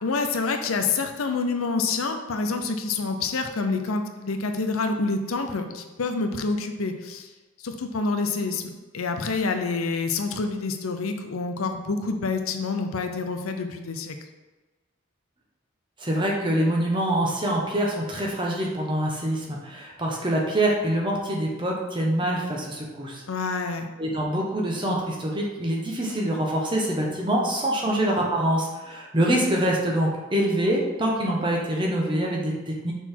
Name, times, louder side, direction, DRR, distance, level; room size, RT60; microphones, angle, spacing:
voice 1, 0.0-7.3 7.6-14.2 23.3-23.9 27.9-28.0, left 4 dB, 85° left, 6 dB, 0.6 m, -27 dB
voice 2, 16.0-23.2 24.0-32.9, right 1 dB, 25° right, -2 dB, 1.0 m, -25 dB
6.1 x 3.9 x 4.5 m, 1.2 s
head